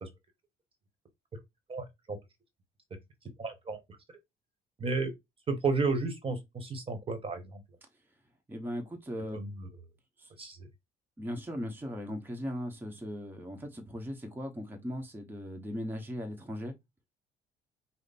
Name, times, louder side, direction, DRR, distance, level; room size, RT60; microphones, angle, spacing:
voice 1, 1.7-2.2 3.4-3.8 4.8-5.1 5.5-7.6 9.3-9.5 10.4-10.7, right 4 dB, 35° right, 1.2 m, -32 dB
voice 2, 8.5-9.4 10.2-10.3 11.2-16.7, equal, 10° right, 1.1 m, -38 dB
5.1 x 2.1 x 4.1 m
cardioid pair, 110°, 17 cm